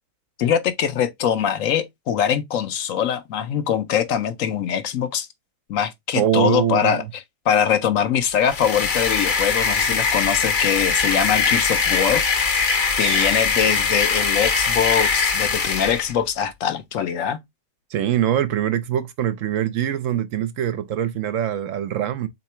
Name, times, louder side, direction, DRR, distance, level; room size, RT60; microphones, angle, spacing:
voice 1, 0.4-5.3 5.7-7.0 7.5-12.2 13.0-17.4, left 8 dB, 70° left, 1.0 m, -22 dB
voice 2, 6.1-7.1 13.0-13.4 17.9-22.3, right 10 dB, 70° right, 0.9 m, -23 dB
sound 1, 8.4-16.1, left 5 dB, 45° left, 0.7 m, -21 dB
3.7 x 2.9 x 4.3 m
omnidirectional pair, 1.5 m